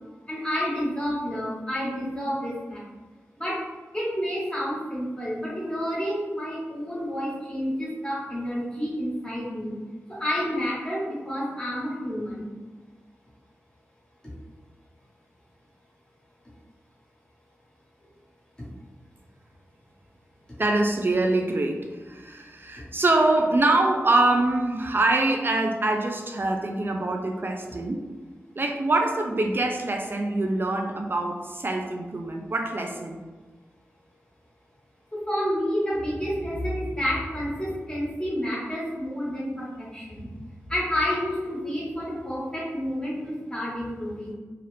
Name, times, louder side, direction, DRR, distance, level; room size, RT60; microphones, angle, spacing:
voice 1, 0.3-2.8 3.4-3.6 3.9-9.8 10.1-12.5 35.1-40.3 40.7-44.3, equal, 15° left, -7 dB, 1.3 m, -29 dB
voice 2, 20.6-28.0 28.6-33.2, right 2 dB, 45° right, 2 dB, 0.4 m, -24 dB
2.8 x 2.4 x 3.2 m, 1.3 s
wide cardioid pair, 65°, 5 cm